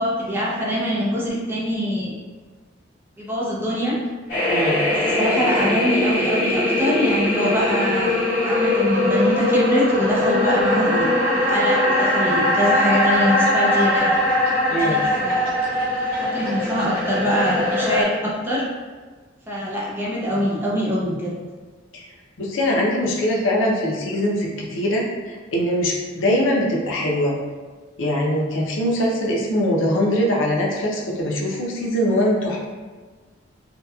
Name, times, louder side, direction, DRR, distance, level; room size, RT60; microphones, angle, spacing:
voice 1, 0.0-2.2 3.2-4.0 4.9-8.2 8.4-14.1 14.8-15.5 16.1-18.6 19.5-21.3, equal, 10° right, -6 dB, 0.4 m, -23 dB
sound 1, 4.3-18.0, left 1 dB, 55° left, 1.2 m, -21 dB
voice 2, 4.5-4.8 14.7-15.0 21.9-22.0 22.4-27.4 28.0-32.6, equal, 85° left, -2 dB, 0.5 m, -22 dB
sound 2, 12.6-18.2, equal, 30° left, 0.8 m, -39 dB
2.7 x 2.1 x 2.3 m, 1.4 s
head